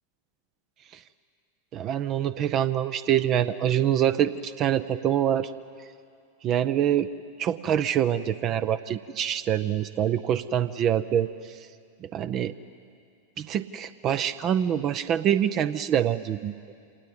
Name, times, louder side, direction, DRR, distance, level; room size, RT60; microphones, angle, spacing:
voice 1, 1.7-5.5 6.4-7.1 7.4-11.6 12.0-12.5 13.4-16.5, right 10 dB, 35° right, 13 dB, 0.6 m, -25 dB
26.5 x 19.0 x 8.8 m, 2.3 s
figure-of-eight pair, 90°, 0 cm